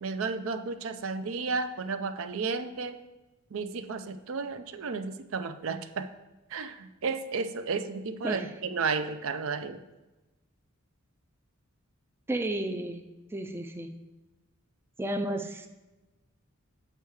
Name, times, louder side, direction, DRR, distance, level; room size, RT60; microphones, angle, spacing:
voice 1, 0.0-3.0 3.5-6.1 6.5-9.8, right 4 dB, 70° right, 9 dB, 0.5 m, -33 dB
voice 2, 12.3-13.0 13.3-13.9 15.0-15.7, right 1 dB, 10° right, 6 dB, 0.4 m, -32 dB
7.8 x 4.6 x 4.7 m, 1.1 s
head